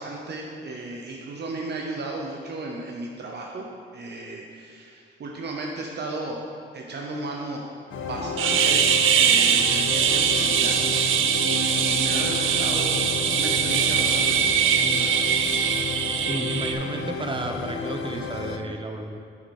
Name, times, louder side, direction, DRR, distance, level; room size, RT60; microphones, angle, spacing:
voice 1, 0.0-3.6 3.9-6.4 6.7-7.6 8.1-8.9 9.2-13.0 13.3-15.2, right 2 dB, 55° right, -1 dB, 0.9 m, -35 dB
sound 1, 7.9-18.6, left 5 dB, 70° left, 0.7 m, -32 dB
sound 2, 8.4-16.7, right 8 dB, 80° right, 0.5 m, -22 dB
voice 2, 16.2-19.2, right 2 dB, 25° right, 4 dB, 0.8 m, -32 dB
7.8 x 6.4 x 4.3 m, 2.3 s
cardioid pair, 100°, 20 cm